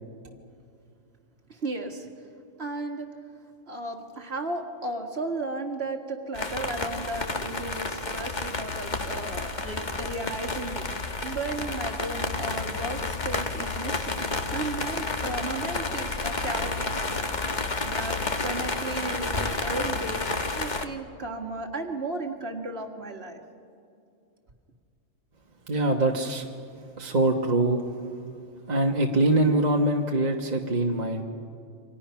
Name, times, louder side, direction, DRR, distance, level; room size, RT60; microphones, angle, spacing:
voice 1, 1.5-2.1 2.6-3.1 3.7-10.9 11.2-14.2 14.5-17.2 17.8-20.2 20.6-23.4, right 2 dB, 50° right, 2 dB, 2.3 m, -34 dB
sound 1, 6.3-20.8, left 3 dB, 35° left, 1.3 m, -31 dB
voice 2, 25.7-26.5 27.0-27.8 28.7-31.2, right 2 dB, 35° right, 1 dB, 1.4 m, -23 dB
29.0 x 25.0 x 5.8 m, 2.4 s
omnidirectional pair, 1.4 m